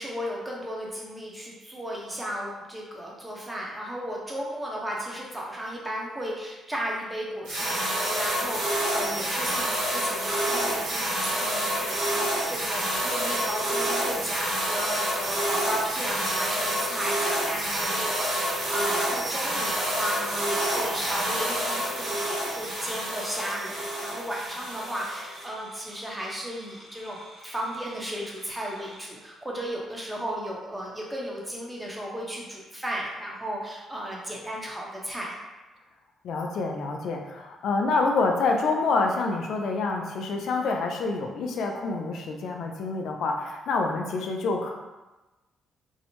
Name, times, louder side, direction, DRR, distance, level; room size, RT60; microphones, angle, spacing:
voice 1, 0.0-35.4, equal, 10° right, -3 dB, 0.7 m, -35 dB
sound 1, 7.5-25.4, right 1 dB, 85° right, 0.8 m, -28 dB
sound 2, 20.0-29.1, equal, 50° right, 1.3 m, -45 dB
voice 2, 36.2-44.7, left 3 dB, 70° left, 2 dB, 0.4 m, -27 dB
2.6 x 2.0 x 2.9 m, 1.1 s
cardioid pair, 90°, 0 cm